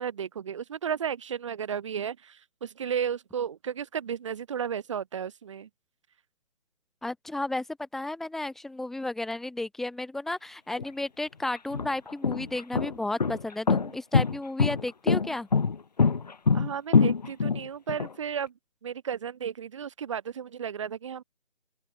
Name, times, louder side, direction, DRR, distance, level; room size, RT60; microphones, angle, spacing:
voice 1, 0.0-5.7 16.5-18.5 18.8-21.2, right 8 dB, 25° right, 3.2 m, -33 dB
voice 2, 7.0-15.5, left 2 dB, ahead, 2.1 m, -33 dB
sound 1, 10.8-10.9 11.6-18.1, left 5 dB, 35° left, 1.2 m, -24 dB
open air
figure-of-eight pair, 165°, 35 cm